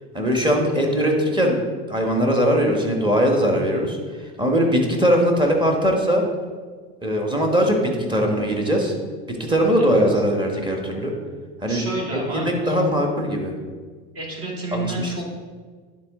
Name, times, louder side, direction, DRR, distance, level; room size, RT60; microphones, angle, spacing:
voice 1, 0.1-1.6 1.9-6.2 7.0-8.9 9.3-11.1 11.6-11.8 12.3-13.5 14.7-15.1, equal, 15° right, 1 dB, 1.5 m, -20 dB
voice 2, 9.8-10.2 11.7-12.8 14.1-15.2, right 2 dB, 45° right, -1 dB, 2.3 m, -30 dB
10.5 x 4.2 x 3.7 m, 1.5 s
hypercardioid pair, 85°, 33 cm